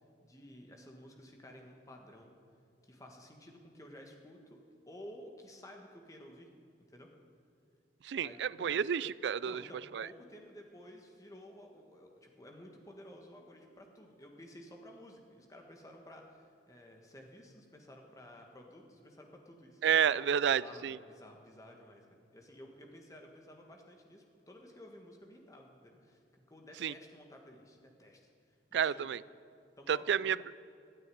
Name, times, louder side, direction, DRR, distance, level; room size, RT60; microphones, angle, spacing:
voice 1, 0.2-2.3 2.8-4.6 4.9-6.5 6.9-7.1 8.2-8.7 9.4-19.8 20.6-28.3 28.7-29.1 29.8-30.1, left 1 dB, 20° left, 1 dB, 1.6 m, -53 dB
voice 2, 8.0-9.7 9.9-10.1 19.8-21.0 26.8-26.9 28.7-29.2 29.9-30.4, right 8 dB, 80° right, 19 dB, 0.3 m, -30 dB
12.0 x 9.5 x 9.8 m, 2.4 s
head